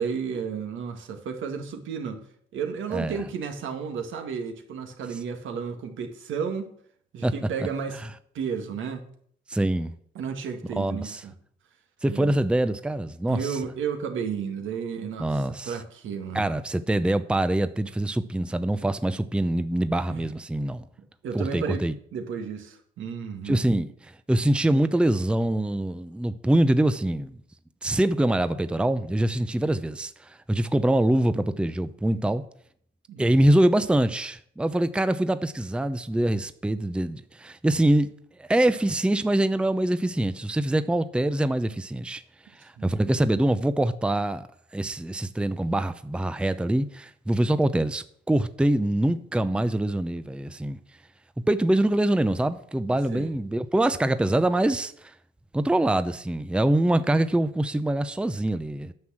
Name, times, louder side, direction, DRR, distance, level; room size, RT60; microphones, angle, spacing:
voice 1, 0.0-2.3 2.5-6.7 7.1-8.0 8.3-9.0 10.2-11.3 12.0-12.3 13.3-16.5 20.1-20.3 21.2-21.9 22.1-23.6 33.1-33.4 42.8-43.0 53.1-53.3, right 6 dB, 75° right, 1.8 m, -32 dB
voice 2, 9.5-9.9 10.8-11.2 12.0-13.5 15.2-15.7 16.3-20.9 21.3-21.9 23.5-23.9 24.3-27.4 27.8-32.4 33.2-38.1 38.4-42.2 42.5-44.5 44.7-50.8 51.5-55.1 55.5-58.9, right 1 dB, 5° right, 0.6 m, -24 dB
9.6 x 6.2 x 7.4 m
cardioid pair, 90°, 20 cm